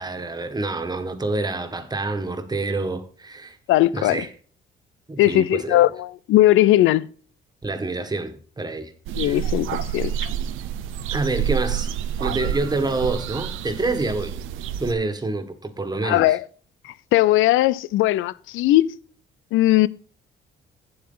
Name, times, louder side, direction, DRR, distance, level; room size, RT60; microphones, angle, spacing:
voice 1, 0.0-3.6 3.9-4.3 5.1-5.8 7.6-8.9 9.2-9.4 11.1-11.9 12.2-14.3 14.8-16.4, right 3 dB, 20° right, 1.5 m, -27 dB
voice 2, 3.7-4.2 5.2-7.1 9.2-10.1 16.0-16.4 17.1-18.9 19.5-19.9, left 15 dB, 85° left, 0.5 m, -18 dB
sound 1, 9.1-14.9, right 9 dB, 90° right, 0.7 m, -28 dB
8.7 x 7.8 x 3.9 m
cardioid pair, 90°, 20 cm